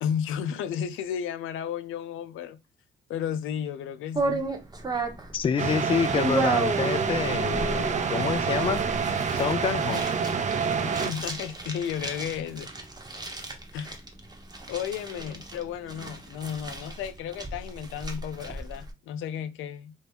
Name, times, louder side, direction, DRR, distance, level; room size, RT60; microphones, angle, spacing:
voice 1, 0.0-2.6 3.1-4.5 10.8-12.7 13.7-14.0 14.7-19.9, left 8 dB, 85° left, 0.5 m, -33 dB
sound 1, 4.2-18.9, right 3 dB, 20° right, 0.9 m, -34 dB
voice 2, 5.3-8.8 9.3-10.1, left 7 dB, 25° left, 0.3 m, -27 dB
sound 2, 5.6-11.1, right 6 dB, 35° right, 0.5 m, -27 dB
2.8 x 2.6 x 3.5 m
cardioid pair, 90°, 20 cm